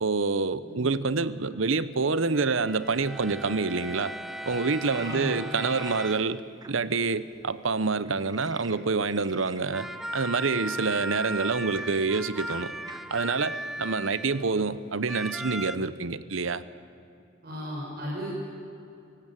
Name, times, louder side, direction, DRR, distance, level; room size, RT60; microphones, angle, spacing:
voice 1, 0.0-4.1 4.5-6.4 6.7-9.9 10.1-12.7 13.1-16.6, right 4 dB, 75° right, 15 dB, 0.9 m, -27 dB
sound 1, 2.3-6.4 9.7-14.7 15.1-15.8, right 1 dB, ahead, 0.5 m, -37 dB
Frog, 4.8-6.0 6.6-6.7 8.0-10.8 11.7-11.9 12.1-12.2 12.5-12.6 12.9-13.0 13.6-14.3, right 4 dB, 20° right, 1.2 m, -45 dB
voice 2, 4.9-5.3 17.4-18.3, equal, 50° right, -5 dB, 6.7 m, -35 dB
25.0 x 17.5 x 9.1 m, 2.7 s
head